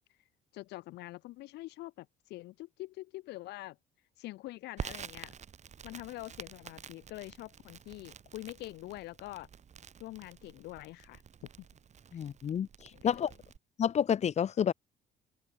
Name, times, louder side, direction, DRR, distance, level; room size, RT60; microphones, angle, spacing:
voice 1, 0.5-3.8 4.2-5.3 5.8-9.5 10.0-11.2 12.1-12.2 12.9-13.3, left 18 dB, 85° left, 2.7 m, -45 dB
Crackle, 4.8-13.6, right 7 dB, 45° right, 6.7 m, -48 dB
voice 2, 12.1-12.7 13.0-13.3 13.8-14.7, left 8 dB, 40° left, 1.0 m, -29 dB
cardioid pair, 110°, 17 cm